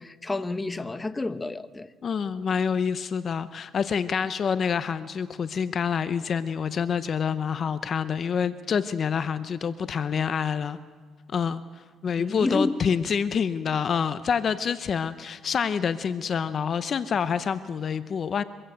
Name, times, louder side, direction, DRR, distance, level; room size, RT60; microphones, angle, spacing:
voice 1, 0.0-1.9 12.2-12.8, left 2 dB, 20° left, 0.9 m, -29 dB
voice 2, 2.0-10.8 11.3-11.6 12.0-18.4, left 6 dB, 50° left, 0.7 m, -27 dB
24.0 x 15.5 x 7.9 m
cardioid pair, 95°, 0 cm